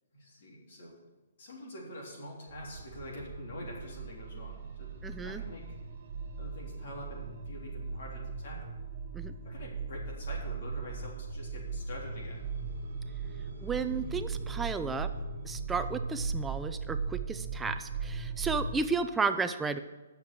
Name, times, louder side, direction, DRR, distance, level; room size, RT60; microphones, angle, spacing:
voice 1, 0.1-1.0 1.4-4.9 5.2-5.7 6.4-8.7 9.4-12.5, left 1 dB, 55° left, -3 dB, 3.6 m, -45 dB
sound 1, 2.5-18.8, right 4 dB, 50° right, 1.6 m, -38 dB
voice 2, 5.0-5.4 9.1-9.3 13.6-15.1 15.4-19.8, right 4 dB, 5° right, 9 dB, 0.5 m, -33 dB
9.7 x 6.8 x 7.3 m, 1.2 s
hypercardioid pair, 165°, 0 cm